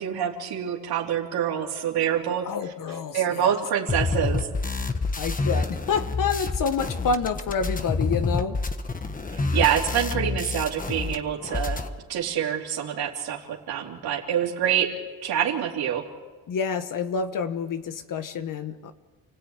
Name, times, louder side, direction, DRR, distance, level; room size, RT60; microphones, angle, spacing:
voice 1, 0.0-2.5 2.9-4.5 9.5-11.8 12.1-14.9 15.2-16.0, right 9 dB, 85° right, 0 dB, 3.4 m, -26 dB
voice 2, 2.4-3.5 5.2-8.6 16.5-18.9, left 5 dB, 60° left, 9 dB, 1.4 m, -28 dB
sound 1, 3.9-11.2 11.4-11.9, left 3 dB, 20° left, 1.4 m, -28 dB
29.0 x 17.0 x 9.0 m, 1.3 s
cardioid pair, 110°, 37 cm